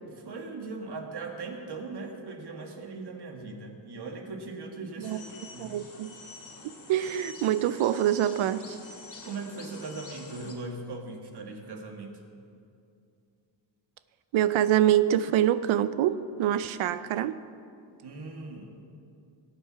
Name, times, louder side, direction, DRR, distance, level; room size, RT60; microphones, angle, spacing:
voice 1, 0.0-5.2 5.5-5.8 9.2-12.1 18.0-18.8, right 3 dB, 55° right, 2 dB, 1.7 m, -39 dB
sound 1, 5.0-10.5, left 3 dB, 40° left, 2.1 m, -47 dB
voice 2, 5.6-6.1 6.9-8.8 14.3-17.3, right 11 dB, 85° right, 13 dB, 0.5 m, -25 dB
18.5 x 7.5 x 5.6 m, 2.5 s
wide cardioid pair, 125°, 46 cm